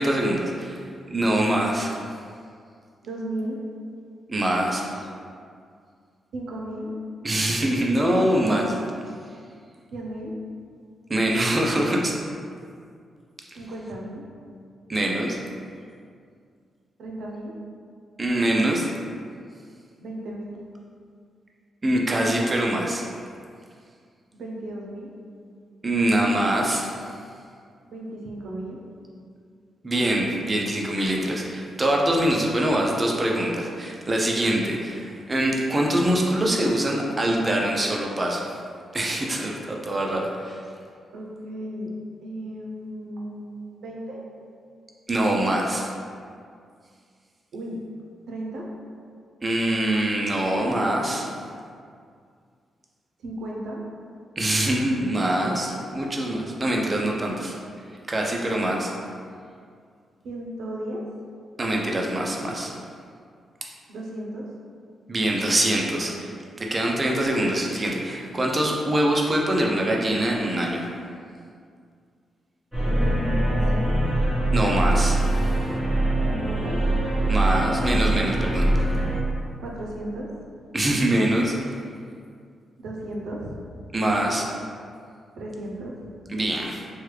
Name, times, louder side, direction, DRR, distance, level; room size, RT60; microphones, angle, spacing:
voice 1, 0.0-2.0 4.3-5.1 7.2-8.8 11.1-12.1 14.9-15.4 18.2-18.9 21.8-23.0 25.8-26.9 29.8-38.6 38.9-40.6 45.1-45.9 49.4-51.3 54.4-57.5 58.1-58.9 61.6-62.7 65.1-66.3 66.6-70.9 74.5-75.5 77.3-78.9 80.7-81.5 83.9-84.5 86.3-86.8, right 1 dB, 25° right, -1 dB, 0.4 m, -24 dB
voice 2, 3.0-3.6 6.3-6.9 9.9-10.3 13.6-14.2 17.0-17.5 20.0-20.6 24.3-25.1 27.9-28.8 41.1-41.9 42.2-44.2 47.5-47.8 48.3-48.7 53.2-53.8 56.7-57.0 60.2-61.0 63.9-64.4 72.8-74.0 76.3-76.8 79.6-80.3 82.8-83.6 85.4-85.9, right 1 dB, 80° right, -2 dB, 0.5 m, -34 dB
sound 1, 72.7-79.2, right 1 dB, ahead, 1.0 m, -23 dB
3.1 x 2.2 x 3.2 m, 2.2 s
cardioid pair, 110°, 0 cm